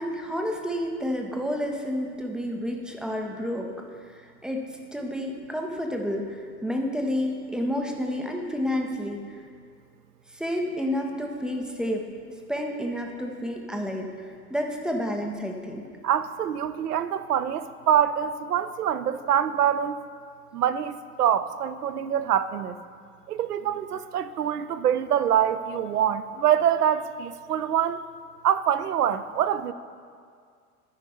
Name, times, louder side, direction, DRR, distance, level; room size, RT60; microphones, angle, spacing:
voice 1, 0.0-3.7 4.1-9.2 10.3-12.0 12.5-15.9, equal, ahead, 1 dB, 0.3 m, -30 dB
voice 2, 16.0-20.0 20.5-22.8 23.3-28.0 28.4-29.7, right 9 dB, 80° right, 12 dB, 0.5 m, -25 dB
13.0 x 5.3 x 4.1 m, 2.1 s
figure-of-eight pair, 80°, 45 cm